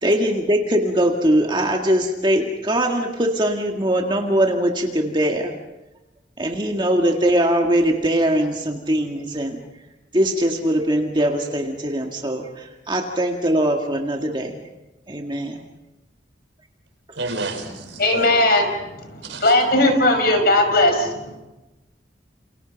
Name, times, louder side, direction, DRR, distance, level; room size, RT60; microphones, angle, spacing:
voice 1, 0.0-5.6 6.4-9.6 10.1-14.6 15.1-15.6, right 1 dB, 25° right, 2 dB, 1.9 m, -21 dB
voice 2, 17.2-18.3 19.3-19.6, right 2 dB, 80° right, 5 dB, 5.2 m, -30 dB
voice 3, 18.0-18.7 19.0-21.3, left 1 dB, 55° left, 6 dB, 5.2 m, -18 dB
30.0 x 28.0 x 5.3 m, 1.0 s
head